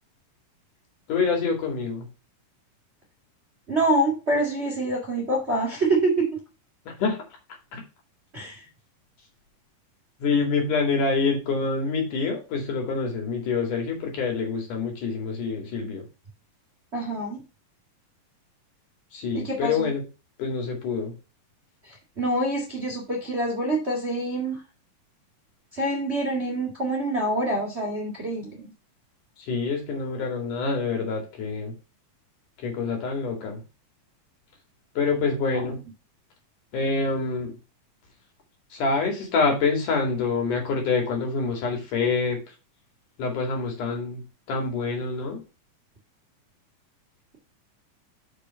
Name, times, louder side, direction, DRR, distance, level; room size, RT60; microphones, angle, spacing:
voice 1, 1.1-2.1 6.9-7.2 7.7-7.8 10.2-16.0 19.1-20.0 20.4-21.1 29.4-31.7 32.6-33.6 35.0-35.8 36.7-37.5 38.7-42.4 43.2-45.4, left 4 dB, 70° left, 2 dB, 3.8 m, -26 dB
voice 2, 3.7-6.3 8.3-8.6 16.9-17.4 19.3-19.9 21.8-24.6 25.7-28.6 35.5-35.6, right 1 dB, 25° right, -1 dB, 1.4 m, -26 dB
6.3 x 5.4 x 5.6 m, 0.30 s
omnidirectional pair, 3.9 m